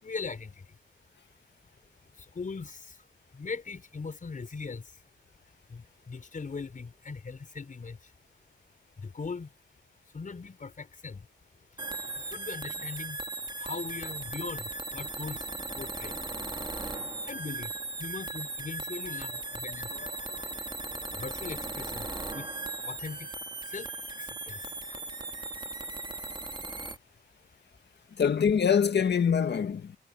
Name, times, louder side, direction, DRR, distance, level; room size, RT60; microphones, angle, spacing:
voice 1, 0.0-0.6 2.3-2.9 3.3-4.8 5.7-8.0 9.0-9.5 10.1-11.2 12.3-13.2 13.6-15.4 15.7-16.1 17.3-17.7 18.0-19.9 21.2-22.0 22.3-22.5 22.9-23.3 23.7-23.9 24.2-24.6, left 4 dB, 40° left, 4.9 m, -39 dB
sound 1, 11.8-27.0, right 2 dB, 20° right, 2.4 m, -37 dB
voice 2, 19.8-20.6 28.2-30.0, left 7 dB, 60° left, 1.9 m, -26 dB
wide cardioid pair, 100°, 20 cm